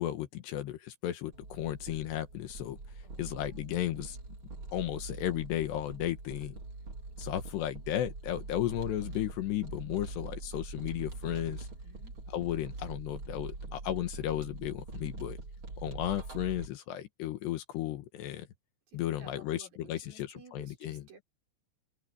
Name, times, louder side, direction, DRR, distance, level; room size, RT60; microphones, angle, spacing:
voice 1, 0.0-2.8 3.2-4.2 4.7-6.6 7.2-11.7 12.3-15.4 15.8-18.5 18.9-21.0, left 12 dB, 75° left, 3.3 m, -34 dB
sound 1, 1.3-16.7, right 3 dB, 30° right, 3.8 m, -43 dB
voice 2, 3.0-3.8 11.8-12.1 18.9-21.2, right 4 dB, 55° right, 7.4 m, -55 dB
open air
omnidirectional pair, 5.2 m